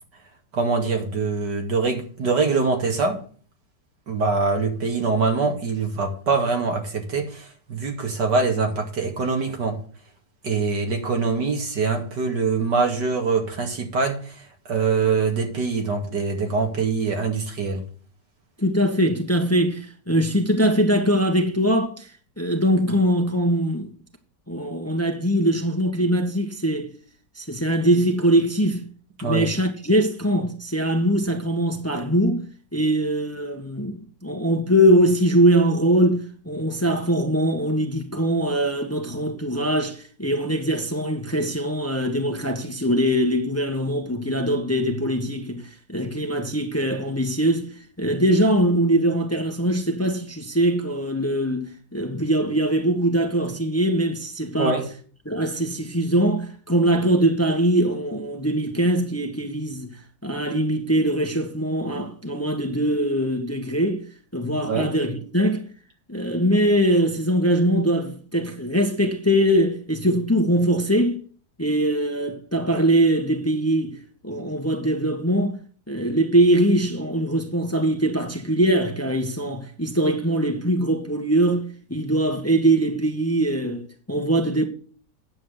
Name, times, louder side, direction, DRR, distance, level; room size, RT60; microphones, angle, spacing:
voice 1, 0.5-3.2 4.1-9.8 10.4-17.8 29.2-29.5 54.6-54.8 64.6-64.9, right 4 dB, 80° right, 2.9 m, -24 dB
voice 2, 18.6-22.1 22.4-23.9 24.5-26.9 27.3-28.8 29.2-32.4 32.7-47.7 48.0-54.8 55.2-60.0 60.2-64.0 64.3-65.7 66.1-71.2 71.6-75.6 75.9-84.6, right 1 dB, 10° left, 1.2 m, -22 dB
9.4 x 7.5 x 6.6 m
omnidirectional pair, 1.8 m